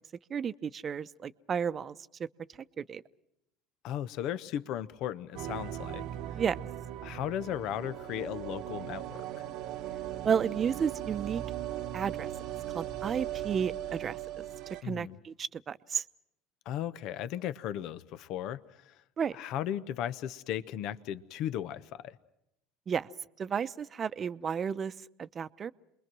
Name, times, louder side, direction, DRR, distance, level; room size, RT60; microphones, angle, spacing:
voice 1, 0.3-2.3 2.8-3.0 6.3-6.6 10.2-11.4 11.9-12.3 12.7-14.4 14.8-16.0 19.2-19.4 22.9-23.1 23.4-25.7, right 7 dB, 35° right, 13 dB, 0.8 m, -32 dB
voice 2, 3.8-6.0 7.0-9.4 14.8-15.2 16.6-18.6 18.8-18.9 19.3-22.2, left 11 dB, 60° left, 15 dB, 1.0 m, -36 dB
sound 1, 5.3-14.8, right 12 dB, 60° right, 1.0 m, -38 dB
28.5 x 22.0 x 6.2 m, 0.84 s
hypercardioid pair, 75°, 0 cm